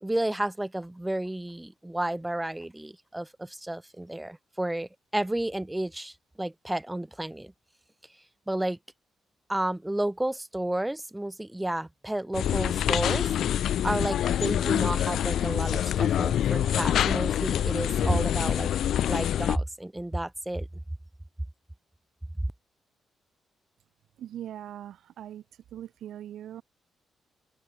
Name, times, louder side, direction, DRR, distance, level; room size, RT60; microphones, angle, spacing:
voice 1, 0.0-7.5 8.5-8.8 9.5-13.3 13.8-18.7 19.1-20.7, right 1 dB, 5° right, 0.6 m, -31 dB
sound 1, 12.3-19.6, left 10 dB, 70° left, 0.4 m, -26 dB
voice 2, 24.2-26.6, right 11 dB, 75° right, 3.4 m, -41 dB
open air
cardioid pair, 130°, 0 cm